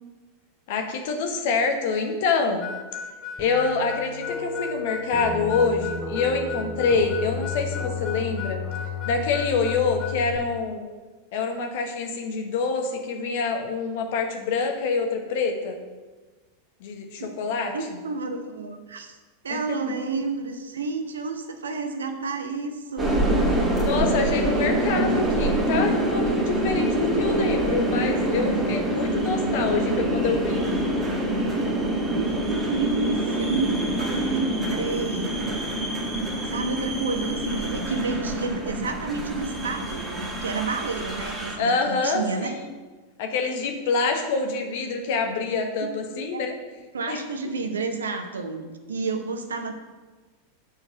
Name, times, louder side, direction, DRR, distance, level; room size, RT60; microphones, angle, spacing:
voice 1, 0.7-2.7 3.4-8.6 9.0-10.8 11.3-15.8 16.8-17.7 19.5-19.6 23.7-30.7 41.6-42.7 43.2-46.5 47.1-47.2, left 4 dB, 60° left, 4 dB, 1.2 m, -26 dB
Harmonica, 2.6-10.2, left 6 dB, 35° left, 0.6 m, -36 dB
sound 1, 3.4-10.4, left 5 dB, 10° left, 1.7 m, -33 dB
voice 2, 17.7-19.2 19.4-23.4 24.3-24.7 32.1-35.5 36.5-42.6 45.8-45.9 46.1-46.5 46.9-49.7, right 4 dB, 80° right, 7 dB, 0.8 m, -30 dB
sound 2, 23.0-41.6, right 1 dB, 20° right, 1.8 m, -26 dB
6.3 x 4.6 x 6.7 m, 1.3 s
hypercardioid pair, 95°, 0 cm